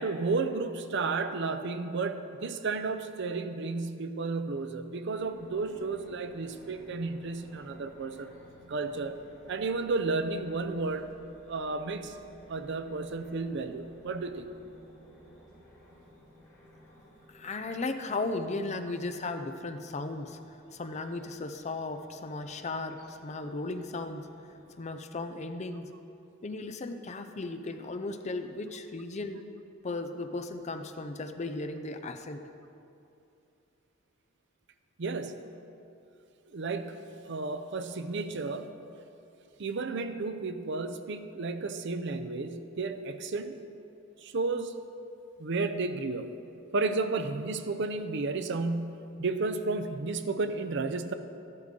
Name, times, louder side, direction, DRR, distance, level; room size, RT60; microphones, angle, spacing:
voice 1, 0.0-8.3 8.7-9.2 9.5-11.1 11.5-12.1 12.5-14.5 35.0-35.4 36.5-38.7 39.6-43.6 44.2-44.7 45.4-46.3 46.7-51.1, right 3 dB, 60° right, 10 dB, 0.5 m, -32 dB
sound 1, 5.2-24.9, equal, 15° left, 2.8 m, -56 dB
voice 2, 17.3-20.4 20.7-24.3 24.8-25.9 26.4-29.4 29.8-32.4, left 2 dB, 35° left, 8 dB, 0.5 m, -36 dB
13.0 x 11.0 x 3.7 m, 2.7 s
head